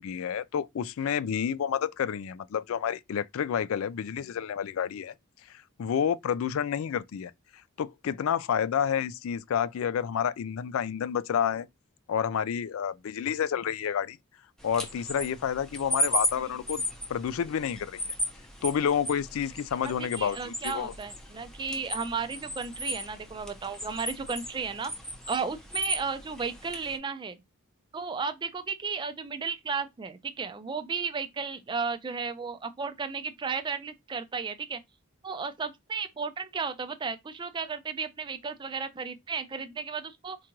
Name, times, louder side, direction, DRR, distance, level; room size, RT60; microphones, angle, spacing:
voice 1, 0.0-5.1 5.5-7.3 7.8-11.7 12.1-14.2 14.6-16.8 17.1-18.0 18.6-20.9, left 8 dB, 65° left, 0.3 m, -29 dB
sound 1, 14.6-27.0, left 1 dB, 5° left, 0.7 m, -36 dB
voice 2, 19.8-24.9 25.3-27.4 27.9-34.8 35.2-40.4, right 5 dB, 20° right, 0.3 m, -34 dB
4.5 x 2.5 x 2.9 m
head